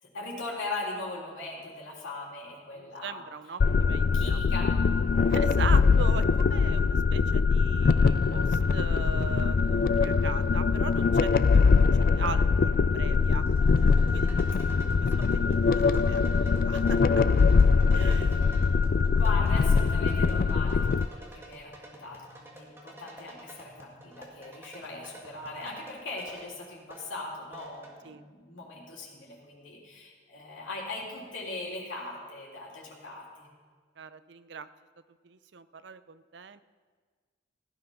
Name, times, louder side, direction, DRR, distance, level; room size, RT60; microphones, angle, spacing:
voice 1, 0.0-3.3 4.1-4.7 18.4-18.7 19.1-33.5, left 2 dB, 90° left, -3 dB, 3.3 m, -39 dB
voice 2, 2.7-3.6 3.9-4.4 5.3-11.9 12.1-13.4 14.1-14.3 15.5-17.0 17.9-18.4 28.0-28.2 34.0-34.7 35.2-36.6, right 5 dB, 65° right, 14 dB, 0.5 m, -40 dB
sound 1, 3.6-21.1, left 5 dB, 50° left, 0.3 m, -23 dB
sound 2, 13.0-27.9, right 1 dB, 15° right, 1.8 m, -51 dB
15.5 x 10.0 x 5.7 m, 1.5 s
head